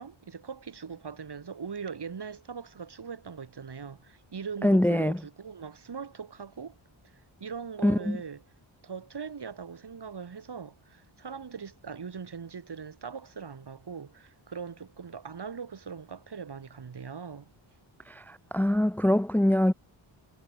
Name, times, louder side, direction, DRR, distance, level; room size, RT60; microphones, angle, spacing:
voice 1, 0.0-6.8 7.1-8.4 8.8-17.5, right 6 dB, 55° right, 4.8 m, -41 dB
voice 2, 4.6-5.2 7.8-8.2 18.1-19.7, left 1 dB, 5° left, 0.8 m, -24 dB
wide cardioid pair, 180°, 49 cm